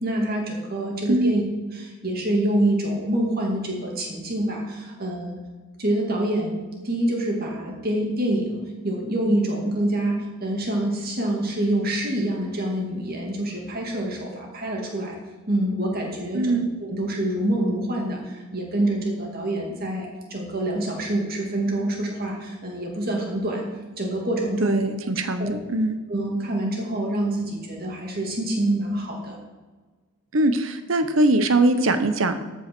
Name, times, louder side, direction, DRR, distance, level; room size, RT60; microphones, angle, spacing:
voice 1, 0.0-1.4 1.7-5.4 5.8-15.2 15.5-23.6 24.0-24.8 25.4-25.5 26.1-29.4, right 1 dB, 40° right, 0 dB, 2.3 m, -26 dB
voice 2, 16.3-16.7 24.6-26.0 30.3-32.4, right 2 dB, 65° right, 9 dB, 0.9 m, -21 dB
13.5 x 5.5 x 6.1 m, 1.3 s
head